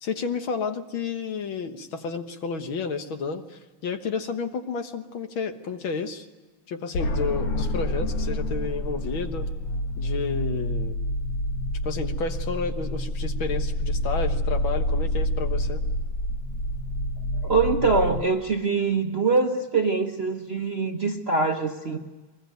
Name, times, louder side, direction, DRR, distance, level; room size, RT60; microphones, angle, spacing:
voice 1, 0.0-6.3 6.7-9.5 10.0-11.0 11.8-15.8, left 5 dB, 65° left, 7 dB, 2.1 m, -31 dB
sound 1, 6.9-18.2, left 1 dB, 90° left, 2.6 m, -28 dB
voice 2, 17.3-22.0, right 4 dB, 40° right, 4 dB, 1.0 m, -24 dB
23.0 x 20.5 x 9.3 m, 1.2 s
omnidirectional pair, 2.4 m